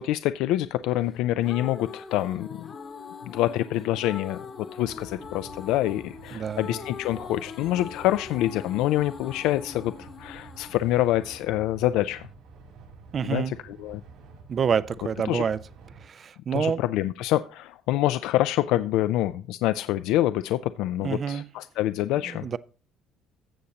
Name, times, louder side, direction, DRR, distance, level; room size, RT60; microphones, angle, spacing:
voice 1, 0.0-2.7 3.2-4.5 4.7-12.3 13.2-14.0 15.2-15.4 16.5-22.4, left 14 dB, 80° left, 0.3 m, -26 dB
sound 1, 1.1-12.1, left 6 dB, 40° left, 1.0 m, -42 dB
sound 2, 4.8-16.0, right 4 dB, 80° right, 3.9 m, -49 dB
voice 2, 6.3-6.7 13.1-13.5 14.5-15.6 16.0-16.8 21.0-21.4 22.4-22.6, right 7 dB, 35° right, 0.4 m, -27 dB
15.0 x 6.5 x 2.8 m
cardioid pair, 125°, 0 cm